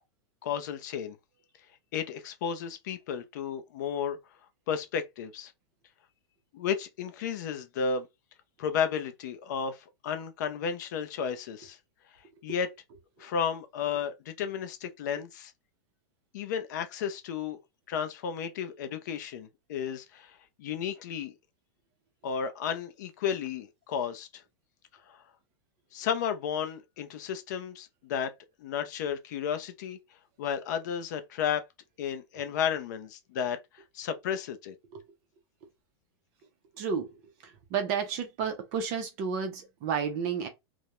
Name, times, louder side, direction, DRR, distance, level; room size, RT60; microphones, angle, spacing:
voice 1, 0.4-1.2 1.9-4.2 4.7-5.5 6.5-8.1 8.6-9.8 10.0-11.8 12.4-12.7 13.2-15.5 16.3-17.6 17.9-21.3 22.2-24.4 25.1-25.2 25.9-28.3 28.6-30.0 30.4-31.6 32.0-34.7, left 7 dB, 40° left, 0.4 m, -33 dB
voice 2, 36.7-40.5, right 6 dB, 25° right, 0.4 m, -32 dB
2.3 x 2.0 x 2.8 m
supercardioid pair, 175°, 15 cm